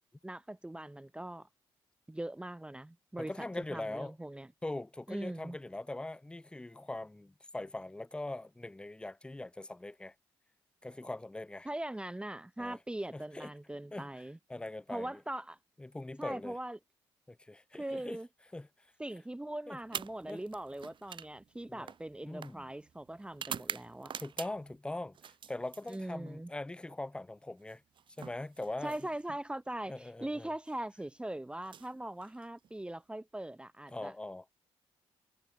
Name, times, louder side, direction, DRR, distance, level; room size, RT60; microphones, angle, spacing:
voice 1, 0.2-1.5 2.1-4.5 5.1-5.6 11.6-14.4 14.9-15.6 16.2-16.8 17.7-18.3 19.0-24.1 25.9-26.5 28.8-34.1, right 1 dB, 10° right, 1.0 m, -41 dB
voice 2, 3.2-4.1 4.6-10.1 10.8-11.7 12.6-12.8 13.1-13.5 13.9-14.2 14.5-15.2 15.8-16.6 17.3-18.2 18.5-18.7 19.7-19.8 20.3-20.4 21.7-21.9 22.2-22.7 24.2-27.8 28.2-29.0 29.8-30.5 33.9-34.5, left 2 dB, 10° left, 0.5 m, -41 dB
sound 1, 19.8-24.8 25.1-26.4 27.6-29.4 30.5-30.8 31.5-32.7, right 8 dB, 55° right, 0.8 m, -46 dB
cardioid pair, 80°, 10 cm